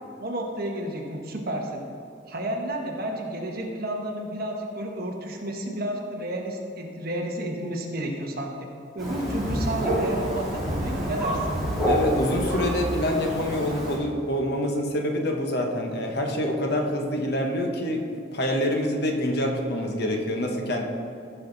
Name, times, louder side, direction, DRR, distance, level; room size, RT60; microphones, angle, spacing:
voice 1, 0.2-1.8 2.3-8.7 8.9-11.6, right 1 dB, 45° right, 0 dB, 1.3 m, -31 dB
Thunder, 9.0-14.0, equal, ahead, 2.5 m, -27 dB
voice 2, 11.8-20.8, left 1 dB, 50° left, 2 dB, 1.1 m, -26 dB
15.5 x 5.8 x 4.0 m, 2.6 s
head